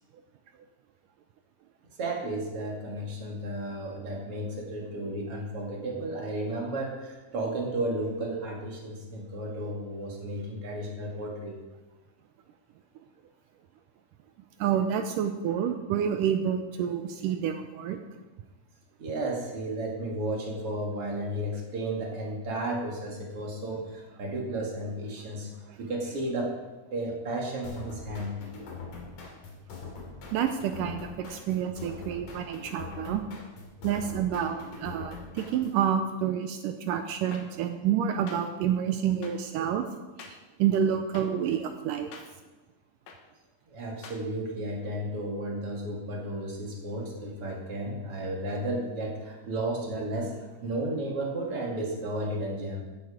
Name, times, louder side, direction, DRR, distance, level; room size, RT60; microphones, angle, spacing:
voice 1, 2.0-11.5 19.0-25.5 25.8-26.5 26.9-28.4 43.7-50.4 50.6-52.8, right 1 dB, 45° right, -1 dB, 2.6 m, -33 dB
voice 2, 14.6-18.0 25.7-25.8 30.3-33.2 33.8-39.9 40.2-42.1, right 9 dB, 80° right, 7 dB, 2.1 m, -28 dB
sound 1, 27.6-35.9, left 4 dB, 65° left, 3.6 m, -43 dB
sound 2, 37.3-37.4 38.3-38.4 39.2-39.3 40.2-40.3 41.1-41.3 42.1-42.2 43.1-43.2 44.0-44.2, left 6 dB, 80° left, 3.0 m, -44 dB
14.5 x 7.9 x 4.9 m, 1.1 s
omnidirectional pair, 4.1 m